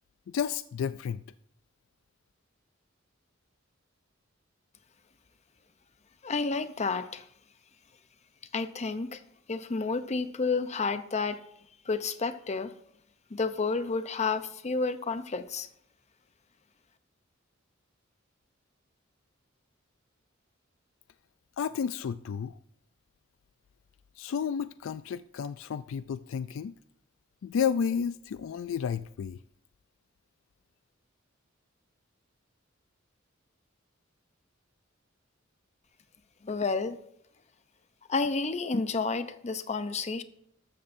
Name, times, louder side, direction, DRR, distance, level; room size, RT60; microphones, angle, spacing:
voice 1, 0.3-1.2 21.6-22.6 24.2-26.7 27.4-29.4, left 7 dB, 70° left, 0.3 m, -31 dB
voice 2, 6.2-7.3 8.5-9.2 9.5-11.4 11.9-12.7 13.3-15.7 36.4-37.0 38.1-40.2, left 4 dB, 35° left, 0.7 m, -30 dB
13.5 x 12.5 x 2.6 m
head